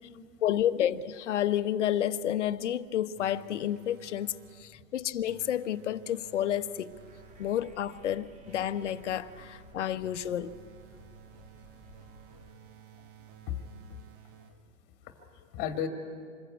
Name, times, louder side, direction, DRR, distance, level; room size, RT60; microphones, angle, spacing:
voice 1, 0.4-6.9 7.4-10.6, left 11 dB, 55° left, 1.2 m, -30 dB
sound 1, 3.2-4.8 5.3-7.8 8.4-14.8, right 11 dB, 40° right, 2.0 m, -55 dB
sound 2, 6.9-12.5, right 2 dB, 15° right, 3.4 m, -56 dB
voice 2, 12.0-12.4 13.5-13.6 15.0-15.9, left 9 dB, 25° left, 2.1 m, -36 dB
27.0 x 21.5 x 9.5 m
hypercardioid pair, 130°, 42 cm